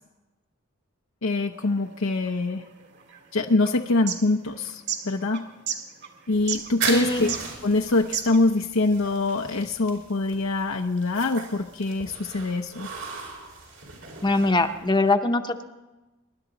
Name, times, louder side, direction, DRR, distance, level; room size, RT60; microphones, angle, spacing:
voice 1, 1.2-2.6 3.3-5.5 6.3-7.3 7.6-12.9, left 2 dB, 85° left, 3 dB, 0.8 m, -24 dB
sound 1, 1.5-8.6, right 8 dB, 55° right, 2.2 m, -35 dB
sound 2, 6.3-15.0, right 4 dB, 80° right, 4.6 m, -37 dB
voice 2, 6.9-7.3 14.2-15.6, left 2 dB, 20° left, 6 dB, 0.8 m, -22 dB
23.5 x 11.5 x 4.0 m, 1.1 s
head